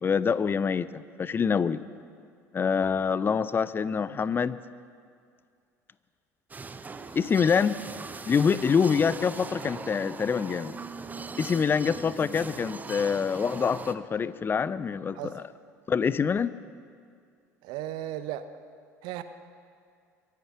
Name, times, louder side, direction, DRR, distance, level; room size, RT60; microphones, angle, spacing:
voice 1, 0.0-1.8 2.5-4.6 7.2-7.8 8.3-10.7 11.4-15.2 15.9-16.5, left 6 dB, 25° left, 17 dB, 0.5 m, -25 dB
sound 1, 6.5-13.9, right 4 dB, 20° right, 0.7 m, -40 dB
voice 2, 17.6-18.5 19.0-19.2, right 13 dB, 55° right, 11 dB, 0.7 m, -35 dB
23.0 x 9.5 x 5.9 m, 2.2 s
figure-of-eight pair, 65°, 9 cm